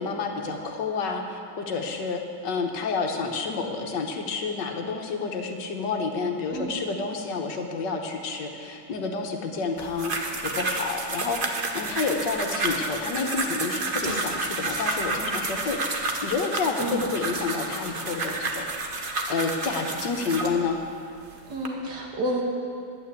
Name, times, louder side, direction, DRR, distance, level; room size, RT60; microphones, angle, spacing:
voice 1, 0.0-10.1 10.4-20.8, left 4 dB, 70° left, 3 dB, 1.7 m, -29 dB
sound 1, 9.8-20.6 21.2-21.7, right 2 dB, 35° right, 0.9 m, -30 dB
voice 2, 16.8-17.1 21.5-22.4, right 1 dB, 65° right, -1 dB, 2.1 m, -30 dB
11.0 x 9.1 x 8.3 m, 2.8 s
omnidirectional pair, 2.0 m